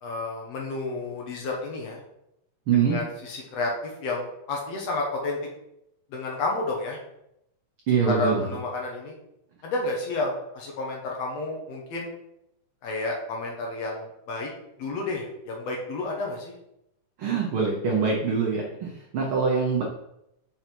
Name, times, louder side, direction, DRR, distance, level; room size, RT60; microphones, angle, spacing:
voice 1, 0.0-2.0 2.7-5.4 6.1-7.0 8.1-9.1 9.6-12.1 12.8-14.5 14.8-16.5, left 2 dB, 65° left, 0 dB, 1.9 m, -31 dB
voice 2, 2.7-3.0 7.9-8.4 17.2-19.8, right 6 dB, 85° right, -1 dB, 1.1 m, -24 dB
5.6 x 5.5 x 4.5 m, 0.82 s
omnidirectional pair, 3.7 m